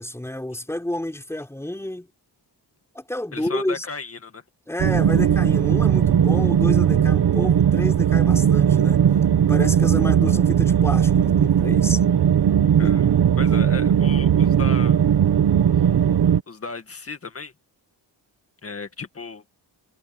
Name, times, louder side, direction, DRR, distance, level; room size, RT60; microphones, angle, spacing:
voice 1, 0.0-2.1 2.9-3.9 4.7-9.0 9.5-12.0 12.8-13.1, left 1 dB, 5° left, 4.6 m, -30 dB
voice 2, 3.3-4.4 12.8-15.0 15.8-16.0 16.5-17.5 18.6-19.4, left 4 dB, 30° left, 2.0 m, -35 dB
sound 1, 4.8-16.4, right 9 dB, 60° right, 1.0 m, -18 dB
wide cardioid pair, 175°, 43 cm